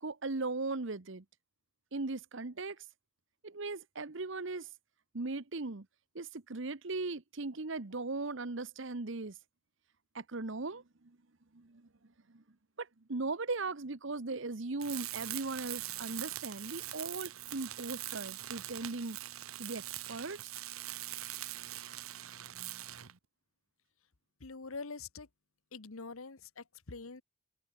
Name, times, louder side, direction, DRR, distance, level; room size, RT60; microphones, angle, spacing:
voice 1, 0.0-1.2 1.9-2.8 3.4-4.7 5.1-5.9 6.1-9.3 10.1-10.8 11.5-11.9 12.3-12.4 12.8-19.2 19.6-19.8 20.1-20.5, right 3 dB, 60° right, 1.0 m, -38 dB
Tools, 14.8-23.2, right 14 dB, 85° right, 1.2 m, -42 dB
voice 2, 24.4-25.3 25.7-27.2, left 4 dB, 80° left, 1.2 m, -45 dB
head